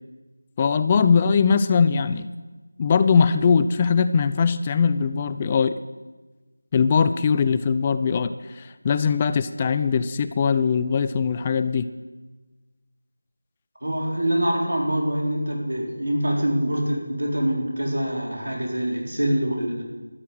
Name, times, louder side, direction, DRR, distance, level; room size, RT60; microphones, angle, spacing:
voice 1, 0.6-2.3 2.8-5.8 6.7-11.9, left 6 dB, 20° left, 12 dB, 0.3 m, -21 dB
voice 2, 13.8-19.8, right 1 dB, 85° right, -2 dB, 4.3 m, -25 dB
12.5 x 6.4 x 9.2 m, 1.2 s
figure-of-eight pair, 170°, 0 cm